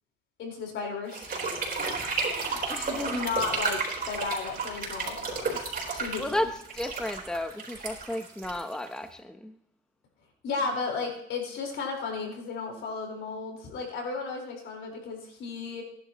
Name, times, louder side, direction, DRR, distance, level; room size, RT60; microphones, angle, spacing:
voice 1, 0.4-1.3 1.8-3.8 4.1-6.2 10.4-15.8, left 4 dB, 75° left, 0 dB, 4.5 m, -34 dB
sound 1, 1.1-9.1, right 4 dB, 45° right, 4.4 m, -32 dB
voice 2, 2.7-3.2 6.2-9.6, left 1 dB, 5° left, 8 dB, 0.8 m, -33 dB
18.5 x 11.0 x 3.0 m, 0.72 s
cardioid pair, 90°, 20 cm